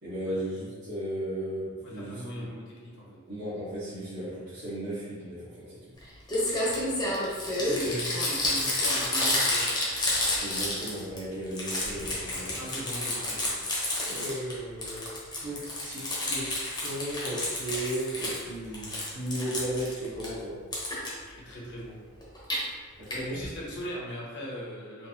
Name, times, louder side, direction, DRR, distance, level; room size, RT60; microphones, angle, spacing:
voice 1, 0.0-2.5 3.3-5.9 10.4-12.6 14.0-15.1 15.4-20.6 23.0-23.5, right 1 dB, 55° right, -13 dB, 1.1 m, -35 dB
voice 2, 1.8-3.2 6.5-10.0 12.6-13.6 21.2-22.0 23.1-25.1, equal, 60° left, -5 dB, 1.0 m, -40 dB
Crumpling crinkling, 6.0-6.1 6.3-11.2 11.5-14.5 14.8-18.4 18.7-20.3 20.7-21.1 22.2-22.6 23.1-23.2 23.4-23.5 23.7-23.8, left 1 dB, 20° left, 0.8 m, -30 dB
3.9 x 2.7 x 2.8 m, 1.5 s
head